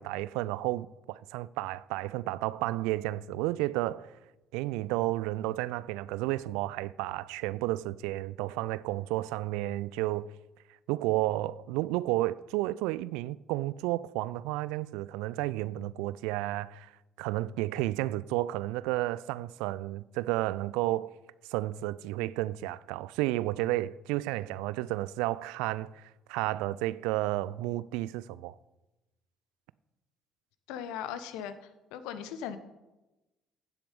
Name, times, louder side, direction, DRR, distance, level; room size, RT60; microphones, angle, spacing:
voice 1, 0.0-4.2 4.5-10.3 10.9-16.9 17.2-21.1 21.5-28.6, right 17 dB, 65° right, 0.3 m, -32 dB
voice 2, 30.7-32.6, left 9 dB, 65° left, 0.9 m, -39 dB
15.5 x 7.5 x 5.3 m
figure-of-eight pair, 50°, 0 cm